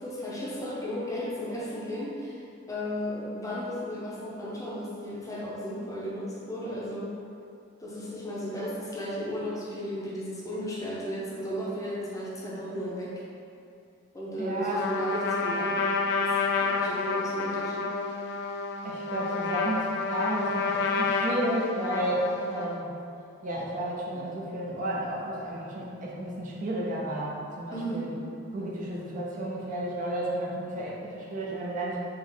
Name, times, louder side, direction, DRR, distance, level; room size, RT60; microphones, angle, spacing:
voice 1, 0.0-7.1 7.8-13.2 14.1-15.8 16.2-17.9 27.7-28.1, equal, 15° left, -6 dB, 0.7 m, -34 dB
voice 2, 14.4-14.8 18.8-22.9 23.4-28.1 28.5-32.0, right 1 dB, 40° right, -4 dB, 0.6 m, -32 dB
Trumpet, 14.7-22.8, left 4 dB, 60° left, 0.3 m, -29 dB
3.5 x 3.0 x 3.9 m, 2.5 s
head